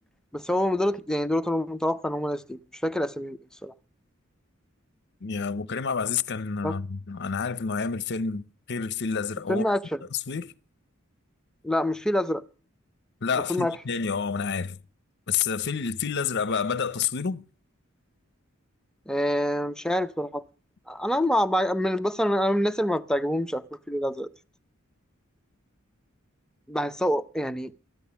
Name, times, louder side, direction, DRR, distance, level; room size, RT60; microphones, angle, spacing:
voice 1, 0.3-3.7 6.6-6.7 9.5-10.0 11.6-12.4 13.5-13.8 19.1-20.4 20.9-24.3 26.7-27.8, equal, 5° left, 0.6 m, -26 dB
voice 2, 5.2-9.7 10.1-10.5 13.2-14.8 15.3-17.4, left 6 dB, 55° left, 0.7 m, -29 dB
14.0 x 10.5 x 7.0 m
head